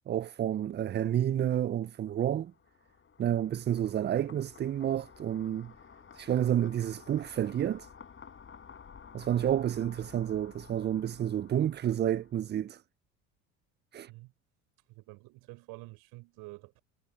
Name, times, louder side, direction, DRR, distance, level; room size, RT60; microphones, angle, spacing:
voice 1, 0.1-2.5 3.2-5.7 6.1-7.9 9.1-12.8 13.9-14.1, right 10 dB, 25° right, 0.5 m, -30 dB
sound 1, 1.9-12.6, left 6 dB, 30° left, 6.5 m, -53 dB
voice 2, 14.9-16.8, right 23 dB, 65° right, 5.3 m, -48 dB
hypercardioid pair, 70°, 39 cm